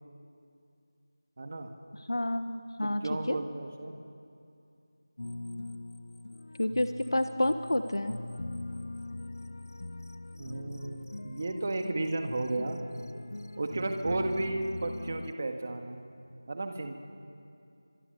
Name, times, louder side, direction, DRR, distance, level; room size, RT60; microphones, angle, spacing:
voice 1, 1.4-1.7 2.8-3.9 10.4-12.8 13.6-16.1 16.5-17.0, right 2 dB, 30° right, 5 dB, 1.8 m, -33 dB
voice 2, 2.1-3.4 6.6-8.2, left 1 dB, 75° left, 9 dB, 1.3 m, -29 dB
sound 1, 5.2-15.3, left 2 dB, 45° left, 0.7 m, -41 dB
26.5 x 23.0 x 6.8 m, 2.5 s
figure-of-eight pair, 175°, 2 cm